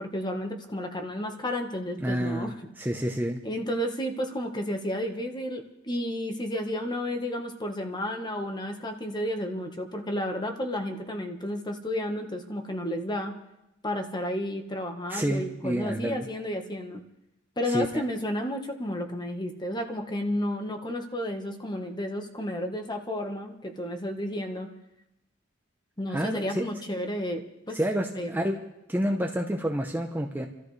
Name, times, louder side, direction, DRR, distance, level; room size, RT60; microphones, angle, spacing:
voice 1, 0.0-2.5 3.4-13.3 13.8-17.0 17.6-24.7 26.0-27.8 28.1-28.4, left 1 dB, 20° left, 4 dB, 1.3 m, -32 dB
voice 2, 2.0-3.4 15.1-16.3 17.7-18.0 26.1-26.7 27.7-28.6 28.9-30.5, equal, 10° right, 2 dB, 0.8 m, -29 dB
28.0 x 13.5 x 3.3 m, 0.86 s
head